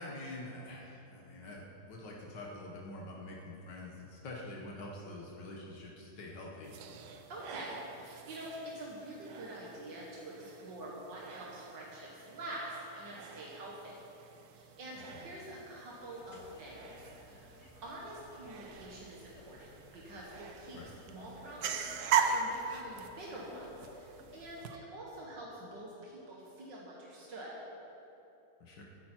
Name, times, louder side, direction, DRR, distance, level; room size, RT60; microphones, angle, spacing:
voice 1, 0.0-6.7 15.1-15.3 20.7-21.0 28.6-28.8, left 1 dB, 75° left, -2 dB, 1.9 m, -46 dB
sound 1, 6.6-24.8, right 7 dB, 65° right, 1.2 m, -40 dB
voice 2, 7.3-13.9 14.5-16.8 17.2-17.5 17.8-19.6 19.9-20.8 21.1-27.6, right 1 dB, 85° right, -4 dB, 2.2 m, -46 dB
sound 2, 16.0-24.8, left 2 dB, 45° left, 1.2 m, -57 dB
14.5 x 10.5 x 4.5 m, 2.9 s
omnidirectional pair, 1.9 m